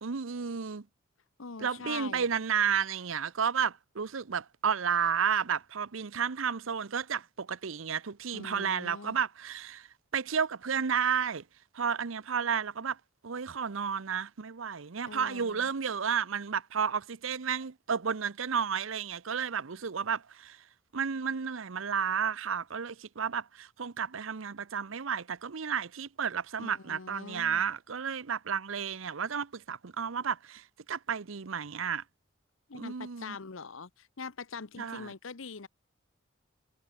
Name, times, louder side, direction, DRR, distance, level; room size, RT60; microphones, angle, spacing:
voice 1, 0.0-0.9 1.6-11.4 11.7-20.7 20.9-32.0 32.7-33.4 34.8-35.1, right 7 dB, 80° right, 0.8 m, -32 dB
voice 2, 1.4-2.3 8.3-9.2 15.1-15.7 26.6-27.7 32.7-35.7, left 4 dB, 80° left, 1.0 m, -43 dB
head